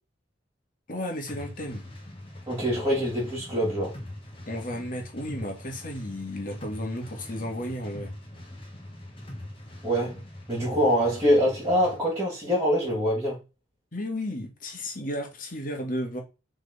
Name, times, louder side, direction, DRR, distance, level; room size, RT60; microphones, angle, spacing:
voice 1, 0.9-1.9 4.5-8.1 13.9-16.2, left 1 dB, 40° left, 1.9 m, -33 dB
sound 1, 1.3-12.0, left 1 dB, 25° left, 1.5 m, -42 dB
voice 2, 2.5-4.0 9.8-10.2 10.5-13.4, equal, 15° right, 2.6 m, -24 dB
6.0 x 3.8 x 4.2 m
head